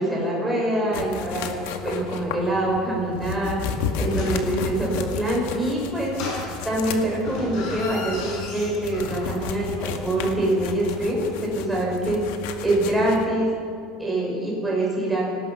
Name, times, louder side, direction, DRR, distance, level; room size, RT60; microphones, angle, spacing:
voice 1, 0.0-1.6 1.8-3.6 3.9-6.1 6.6-12.2 12.6-13.5 14.0-15.2, right 1 dB, 5° right, -4 dB, 6.4 m, -24 dB
sound 1, 0.9-13.3, left 6 dB, 75° left, 2.0 m, -33 dB
sound 2, 4.0-4.5 6.1-6.9 7.2-9.5 9.7-9.8, left 3 dB, 45° left, 7.7 m, -35 dB
26.0 x 18.5 x 6.0 m, 2.4 s
cardioid pair, 170°, 0 cm